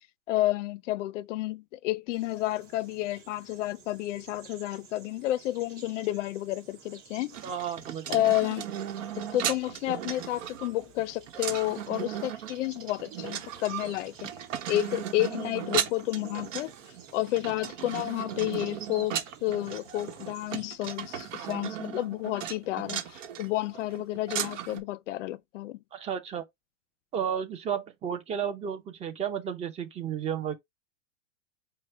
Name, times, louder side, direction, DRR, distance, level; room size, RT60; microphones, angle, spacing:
voice 1, 0.3-7.4 8.1-8.7 9.2-14.3 14.7-16.7 17.1-25.8, left 15 dB, 70° left, 0.5 m, -30 dB
sound 1, 2.1-20.8, right 7 dB, 35° right, 2.4 m, -53 dB
sound 2, 7.3-24.8, right 9 dB, 75° right, 1.1 m, -36 dB
voice 2, 7.4-8.2 21.4-21.8 25.9-26.4 27.1-30.5, right 8 dB, 15° right, 0.6 m, -33 dB
4.8 x 2.2 x 4.2 m
supercardioid pair, 145°, 38 cm